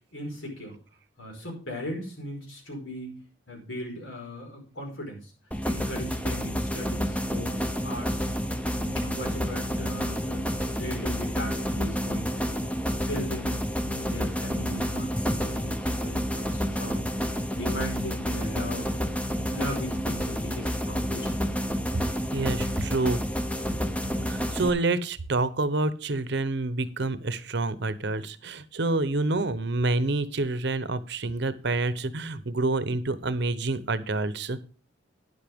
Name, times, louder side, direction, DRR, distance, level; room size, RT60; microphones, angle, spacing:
voice 1, 0.1-0.8 1.2-5.3 5.6-8.3 8.7-10.5 10.8-12.7 13.1-17.1 17.5-18.9 19.4-21.5, left 1 dB, 90° left, 1 dB, 4.9 m, -38 dB
sound 1, 5.5-24.7, equal, 5° left, 0.7 m, -29 dB
voice 2, 22.3-23.2 24.3-34.6, right 2 dB, 60° right, 14 dB, 0.8 m, -28 dB
12.0 x 10.0 x 3.6 m, 0.38 s
head